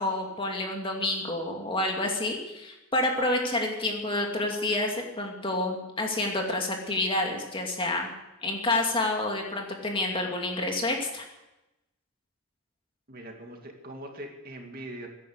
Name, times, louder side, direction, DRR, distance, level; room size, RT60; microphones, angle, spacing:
voice 1, 0.0-8.1 8.4-11.2, left 2 dB, 25° left, 1 dB, 2.5 m, -29 dB
voice 2, 13.1-15.1, right 1 dB, 45° right, 2 dB, 2.3 m, -41 dB
16.0 x 11.0 x 8.2 m, 0.96 s
head